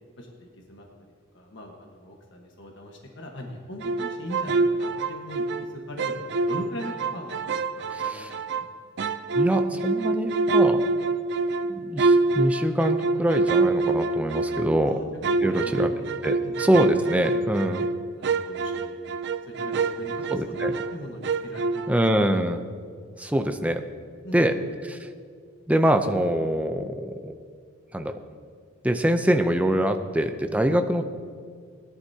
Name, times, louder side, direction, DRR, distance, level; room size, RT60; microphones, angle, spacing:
voice 1, 0.2-0.9 1.3-8.7 14.8-15.1 15.4-16.1 16.4-16.5 17.3-19.2 19.6-22.0 24.2-24.6, equal, 60° left, 0 dB, 1.4 m, -40 dB
sound 1, 3.8-5.7 6.0-8.7 9.0-14.8 15.2-21.0 21.2-22.1, right 3 dB, 55° right, 0.5 m, -25 dB
voice 2, 7.9-8.3 9.3-10.8 11.6-15.0 15.4-15.9 16.2-17.9 20.3-20.7 21.9-22.6 23.2-23.8 24.3-24.5 24.8-25.1 25.7-27.3 27.9-28.2 28.8-31.0, right 1 dB, 5° right, 6 dB, 0.6 m, -24 dB
20.0 x 11.0 x 2.8 m, 2.1 s
head